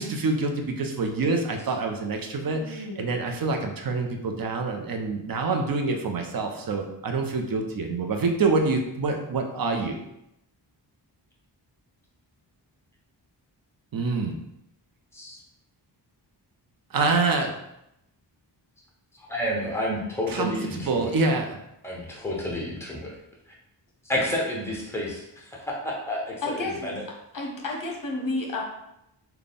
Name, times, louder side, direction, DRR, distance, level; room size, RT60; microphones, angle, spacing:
voice 1, 0.0-10.0 13.9-14.3 16.9-17.5 20.3-21.6, right 3 dB, 55° right, 4 dB, 0.6 m, -26 dB
voice 2, 2.5-3.1 26.4-26.9 27.3-28.6, left 2 dB, 45° left, 0 dB, 0.9 m, -31 dB
voice 3, 19.3-21.1 21.8-23.1 24.0-27.0, left 1 dB, 5° left, -3 dB, 0.9 m, -30 dB
3.4 x 2.2 x 4.0 m, 0.84 s
wide cardioid pair, 125°, 44 cm